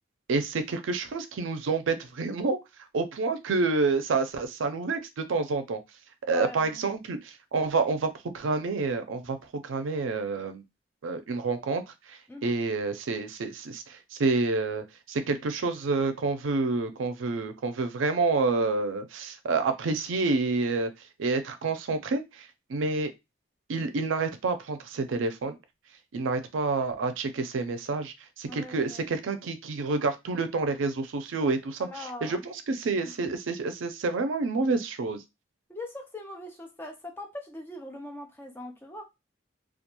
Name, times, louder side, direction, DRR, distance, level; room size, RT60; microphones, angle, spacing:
voice 1, 0.3-2.6 2.9-5.8 6.3-10.6 11.0-11.8 12.1-20.9 21.2-23.1 23.7-25.6 26.1-31.9 32.2-35.2, right 3 dB, 90° right, 0.4 m, -28 dB
voice 2, 6.3-6.9 12.3-12.5 28.5-29.1 31.8-32.5 32.8-33.1 35.7-39.0, left 1 dB, 10° left, 0.4 m, -41 dB
2.3 x 2.2 x 2.9 m
head